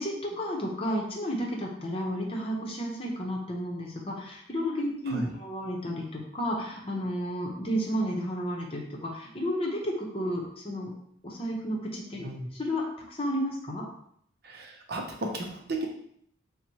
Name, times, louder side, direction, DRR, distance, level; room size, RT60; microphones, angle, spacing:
voice 1, 0.0-10.9 11.2-12.3 12.5-13.8, equal, 30° left, -1 dB, 0.8 m, -32 dB
voice 2, 14.4-15.9, right 1 dB, 55° right, 1 dB, 0.7 m, -34 dB
4.1 x 2.1 x 4.5 m, 0.68 s
head